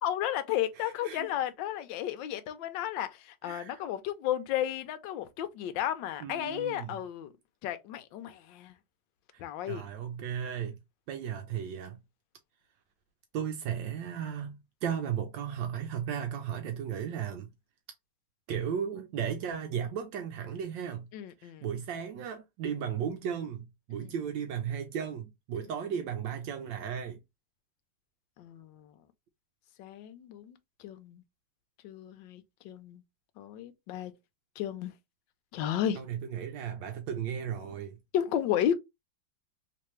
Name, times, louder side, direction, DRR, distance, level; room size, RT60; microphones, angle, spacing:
voice 1, 0.0-7.3 7.6-8.7 9.4-9.9 21.1-21.6 23.9-24.1 25.6-25.7 28.4-28.9 29.8-31.2 31.8-33.0 33.4-34.1 34.6-34.9 35.5-36.0 38.1-38.7, left 11 dB, 80° left, 1.3 m, -33 dB
voice 2, 0.8-1.3 3.4-3.8 6.2-7.0 9.3-10.8 11.1-12.0 13.3-17.5 18.5-21.0 21.4-27.2 35.9-38.0, right 8 dB, 75° right, 1.3 m, -35 dB
3.4 x 3.3 x 3.0 m
omnidirectional pair, 2.0 m